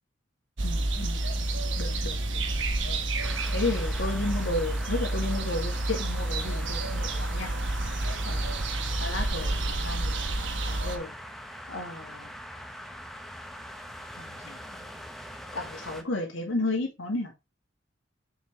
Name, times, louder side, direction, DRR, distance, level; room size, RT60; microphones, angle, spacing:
voice 1, 0.6-1.2 1.8-2.5 2.8-7.5 8.3-11.1 11.7-12.3 14.2-14.9 15.5-17.3, left 2 dB, 85° left, 2.2 m, -34 dB
sound 1, 0.6-11.0, right 2 dB, 75° right, 1.1 m, -29 dB
sound 2, 3.2-16.0, equal, ahead, 0.8 m, -42 dB
7.0 x 5.0 x 3.6 m
head